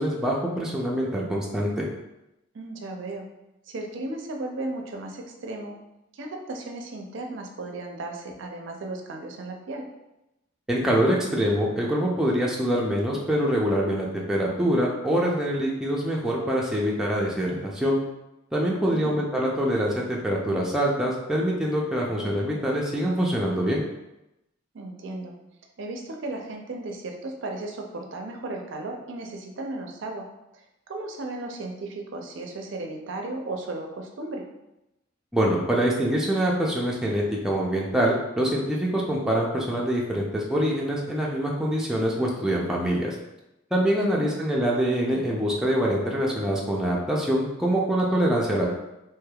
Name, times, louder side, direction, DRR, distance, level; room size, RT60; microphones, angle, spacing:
voice 1, 0.0-1.9 10.7-18.0 18.5-23.8 35.3-43.1 43.7-48.7, equal, 5° right, -4 dB, 0.4 m, -25 dB
voice 2, 2.5-3.3 3.7-5.7 6.1-9.8 18.8-19.3 24.7-25.3 25.8-30.3 30.5-34.4 44.0-44.4, right 2 dB, 65° right, 2 dB, 0.5 m, -35 dB
3.3 x 3.1 x 2.3 m, 0.92 s
head